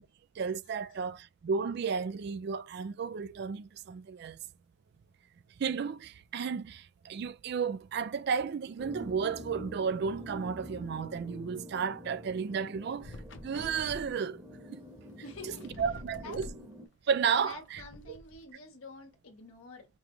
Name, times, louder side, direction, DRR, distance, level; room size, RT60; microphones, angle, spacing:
voice 1, 0.4-4.4 5.6-13.1 13.4-14.4 14.7-14.8 15.8-16.5 17.1-17.8 18.1-18.2, right 6 dB, 50° right, 0.3 m, -33 dB
sound 1, 8.8-16.9, equal, 15° right, 0.9 m, -47 dB
sound 2, 13.0-14.1 15.2-15.3 15.4-16.6 17.5-18.4, left 1 dB, 55° left, 0.7 m, -46 dB
voice 2, 15.2-15.7 16.2-16.4 17.4-19.9, left 2 dB, 85° left, 1.4 m, -48 dB
5.2 x 2.3 x 3.0 m
head